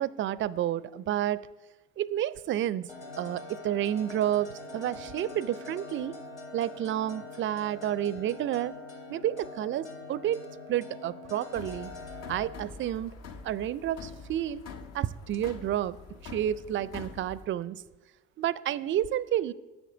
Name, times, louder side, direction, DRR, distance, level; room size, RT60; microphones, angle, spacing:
voice 1, 0.0-1.5 2.0-2.9 3.2-6.1 6.5-8.7 9.1-10.4 10.7-11.9 12.3-13.1 13.4-14.6 14.9-17.8 18.4-19.5, right 11 dB, 40° right, 19 dB, 0.5 m, -30 dB
sound 1, 2.9-12.5, left 2 dB, 70° left, 2.0 m, -44 dB
sound 2, 11.5-17.5, left 5 dB, 50° left, 1.1 m, -45 dB
7.9 x 6.4 x 7.7 m, 1.1 s
hypercardioid pair, 55°, 32 cm